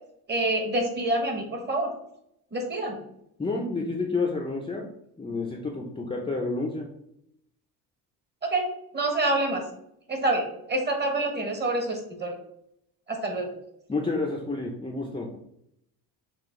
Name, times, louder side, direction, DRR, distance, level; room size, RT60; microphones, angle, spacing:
voice 1, 0.3-1.9 2.5-3.0 8.4-8.7 8.9-9.6 10.1-12.3 13.1-13.5, right 2 dB, 25° right, 3 dB, 1.3 m, -27 dB
voice 2, 3.4-4.9 5.2-6.9 13.9-15.4, left 3 dB, 15° left, 1 dB, 0.6 m, -29 dB
5.8 x 2.4 x 3.7 m, 0.75 s
cardioid pair, 110°, 37 cm